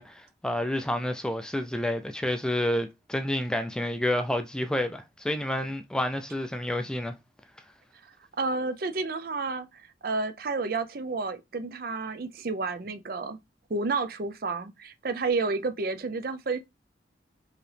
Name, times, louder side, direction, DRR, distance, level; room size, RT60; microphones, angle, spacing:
voice 1, 0.0-7.1, left 1 dB, 5° left, 0.3 m, -29 dB
voice 2, 8.4-13.4 13.7-16.6, right 3 dB, 55° right, 0.5 m, -30 dB
4.7 x 2.9 x 3.3 m
head